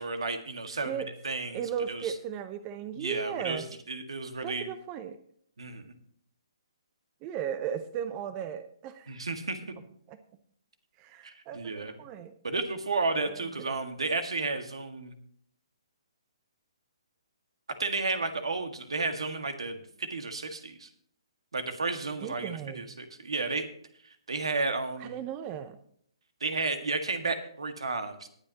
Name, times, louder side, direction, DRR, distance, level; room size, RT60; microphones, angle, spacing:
voice 1, 0.0-1.6 1.9-2.1 3.0-4.7 5.6-5.9 9.1-9.6 11.2-11.9 12.4-15.1 17.8-20.9 21.5-23.7 24.0-25.2 26.4-28.3, right 3 dB, 80° right, 7 dB, 1.8 m, -32 dB
voice 2, 1.5-3.7 4.4-5.2 7.2-9.2 10.1-10.2 11.0-12.3 13.1-13.4 22.2-22.9 25.0-25.8, right 8 dB, 25° right, 11 dB, 0.8 m, -36 dB
19.5 x 8.6 x 2.9 m, 0.63 s
hypercardioid pair, 135°, 3 cm